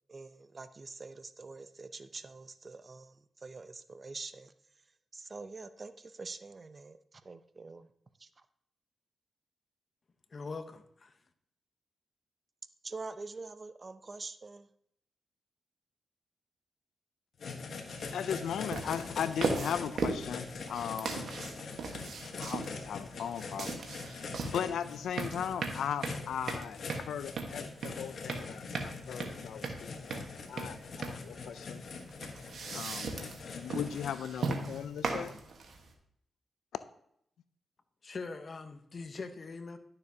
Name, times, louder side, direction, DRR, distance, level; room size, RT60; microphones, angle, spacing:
voice 1, 0.1-4.5 5.1-7.9 8.2-8.3 12.8-14.7, right 3 dB, 40° right, 0.6 m, -45 dB
voice 2, 10.3-11.2 38.0-39.8, left 4 dB, 45° left, 0.9 m, -42 dB
sound 1, 17.4-34.1, left 4 dB, 70° left, 1.2 m, -43 dB
sound 2, 17.9-35.9, right 4 dB, 70° right, 1.3 m, -38 dB
voice 3, 18.1-21.3 22.4-31.8 32.7-33.2 33.4-35.4, left 8 dB, 85° left, 0.3 m, -38 dB
11.5 x 6.8 x 2.8 m
cardioid pair, 65°, 0 cm